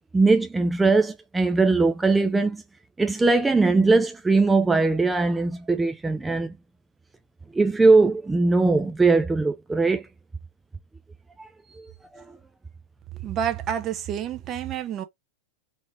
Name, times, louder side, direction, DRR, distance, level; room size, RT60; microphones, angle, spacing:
voice 1, 0.1-2.6 3.0-6.5 7.5-10.1 11.4-12.2, right 3 dB, 10° right, 0.5 m, -21 dB
voice 2, 13.2-15.0, right 9 dB, 30° right, 0.9 m, -29 dB
4.2 x 2.9 x 4.0 m
figure-of-eight pair, 90°, 0 cm